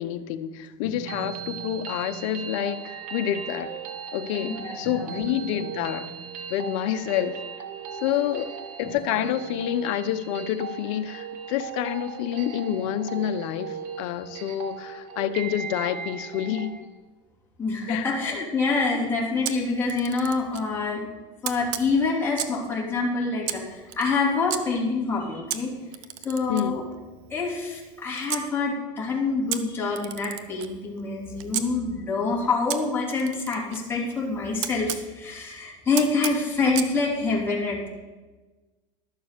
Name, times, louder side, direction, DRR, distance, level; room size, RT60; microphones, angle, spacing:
voice 1, 0.0-3.7 4.1-6.1 6.5-7.4 8.0-8.5 8.8-16.7 17.9-18.1 26.5-26.8, left 11 dB, 65° left, 9 dB, 0.9 m, -28 dB
sound 1, 0.8-16.8, right 7 dB, 50° right, 1.4 m, -37 dB
voice 2, 4.4-5.2 17.6-21.1 21.4-25.7 26.2-26.8 27.3-37.9, left 3 dB, 15° left, -5 dB, 3.2 m, -26 dB
Camera, 19.4-20.7 21.4-22.7 23.4-24.6 25.5-28.5 29.5-31.7 32.7-35.1 36.0-36.9, right 12 dB, 70° right, 0.9 m, -35 dB
12.0 x 6.9 x 6.8 m, 1.2 s
supercardioid pair, 125°, 17 cm